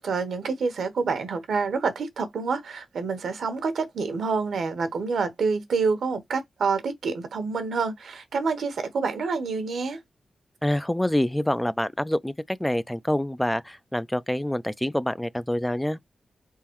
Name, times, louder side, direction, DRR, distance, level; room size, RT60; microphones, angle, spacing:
voice 1, 0.0-10.0, right 4 dB, 85° right, 1.0 m, -27 dB
voice 2, 10.6-16.0, left 1 dB, 10° left, 0.4 m, -26 dB
4.1 x 3.7 x 3.0 m
cardioid pair, 60°, 0 cm